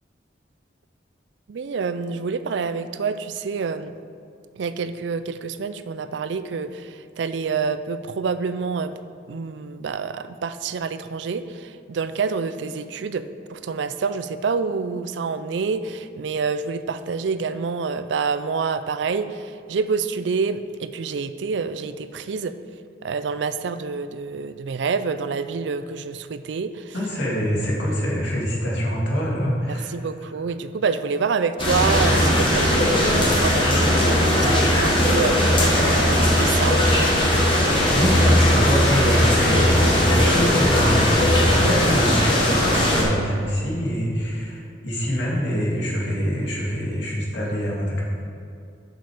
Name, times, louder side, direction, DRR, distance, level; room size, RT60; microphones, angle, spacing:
voice 1, 1.5-3.9 4.6-8.9 9.3-13.2 13.5-22.5 23.0-26.9 29.7-36.8, right 5 dB, 75° right, 11 dB, 0.4 m, -27 dB
voice 2, 26.9-29.9 37.9-48.0, equal, 70° left, -4 dB, 2.1 m, -25 dB
sound 1, 31.6-43.0, left 1 dB, 25° left, 1.4 m, -18 dB
8.0 x 6.5 x 4.9 m, 2.4 s
head